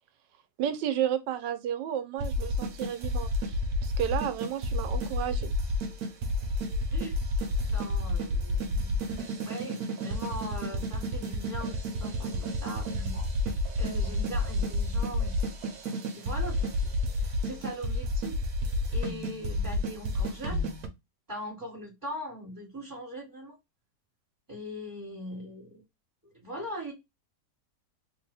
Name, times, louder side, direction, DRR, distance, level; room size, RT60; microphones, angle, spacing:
voice 1, 0.6-5.5, right 10 dB, 85° right, 1.3 m, -32 dB
sound 1, 2.2-20.9, left 1 dB, 65° right, 1.2 m, -30 dB
voice 2, 6.9-7.2 7.6-9.2 9.4-15.3 16.1-16.7 17.1-18.4 18.9-20.7 21.3-23.6 24.5-25.8 26.2-26.9, equal, 10° right, 1.4 m, -41 dB
3.4 x 2.6 x 3.3 m
omnidirectional pair, 1.9 m